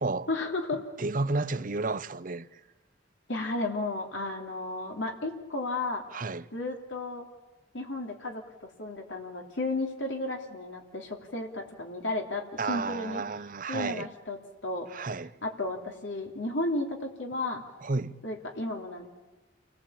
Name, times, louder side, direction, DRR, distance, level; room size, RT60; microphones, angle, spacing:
voice 1, 0.3-0.8 3.3-6.0 6.5-7.2 7.7-13.2 13.7-14.4 14.6-14.9 15.4-17.6 18.2-19.1, left 2 dB, 80° left, 2.9 m, -33 dB
voice 2, 1.0-2.6 6.1-6.5 12.6-14.1 14.9-15.3 17.8-18.2, right 3 dB, 45° right, 0.8 m, -32 dB
30.0 x 20.5 x 8.7 m
head